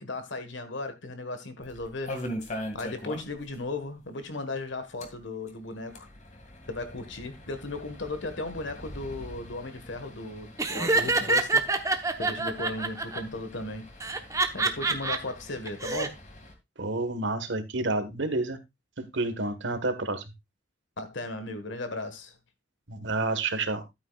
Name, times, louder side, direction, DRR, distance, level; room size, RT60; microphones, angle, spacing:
voice 1, 0.0-2.2 2.7-6.1 6.7-11.7 12.2-13.8 14.5-16.2 21.0-22.3, left 2 dB, 65° left, 1.5 m, -36 dB
sound 1, 1.6-3.6 3.8-3.9 4.2-4.3 4.9-16.5, equal, 40° left, 2.1 m, -43 dB
Laughter, 10.6-13.2 14.0-15.2 15.7-16.1, right 3 dB, 15° right, 0.9 m, -26 dB
voice 2, 16.8-18.6 19.0-20.2 22.9-23.8, right 2 dB, 65° right, 1.4 m, -29 dB
12.5 x 8.8 x 2.4 m
head